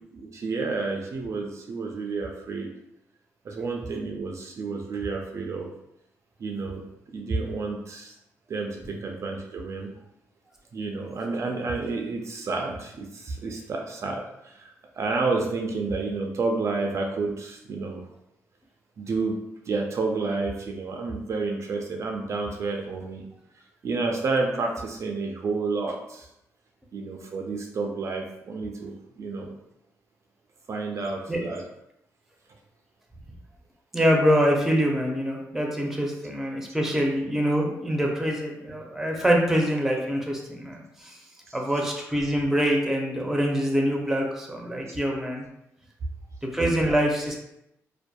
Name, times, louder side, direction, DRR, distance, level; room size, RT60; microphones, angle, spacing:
voice 1, 0.1-2.7 3.4-5.7 6.4-6.8 7.1-8.1 8.5-9.9 10.7-18.0 19.0-19.4 19.7-23.3 23.8-26.3 26.9-29.5 30.7-31.6 41.5-41.6, right 3 dB, 55° right, 1 dB, 0.4 m, -30 dB
voice 2, 33.9-41.2 41.5-45.5 46.5-47.4, equal, 5° right, 0 dB, 0.6 m, -25 dB
2.6 x 2.2 x 2.2 m, 0.83 s
cardioid pair, 70°, 6 cm